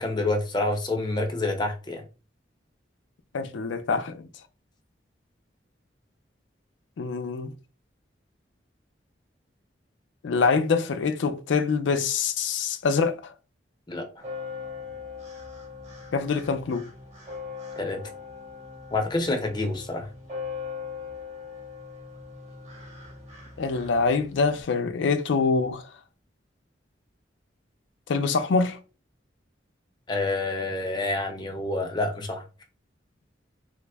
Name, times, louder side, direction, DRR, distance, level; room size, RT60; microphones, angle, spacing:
voice 1, 0.0-2.0 13.9-14.1 17.8-18.0 18.9-20.1 30.1-32.4, left 2 dB, 25° left, 0.6 m, -27 dB
voice 2, 3.3-4.2 7.0-7.5 10.2-13.2 16.1-16.9 23.6-25.8 28.1-28.8, left 4 dB, 75° left, 0.4 m, -25 dB
sound 1, 14.2-24.6, left 5 dB, 35° right, 1.1 m, -40 dB
3.4 x 2.0 x 3.3 m
head